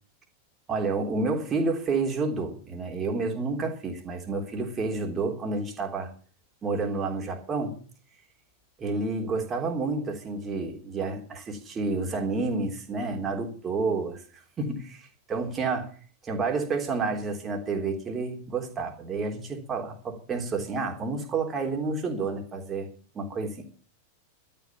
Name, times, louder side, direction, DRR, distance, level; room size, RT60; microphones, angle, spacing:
voice 1, 0.7-6.1 6.6-7.8 8.8-15.0 15.3-15.9 16.2-22.9 23.2-23.6, right 3 dB, 25° right, 2 dB, 3.5 m, -30 dB
13.0 x 9.1 x 7.2 m, 0.41 s
figure-of-eight pair, 90°, 0 cm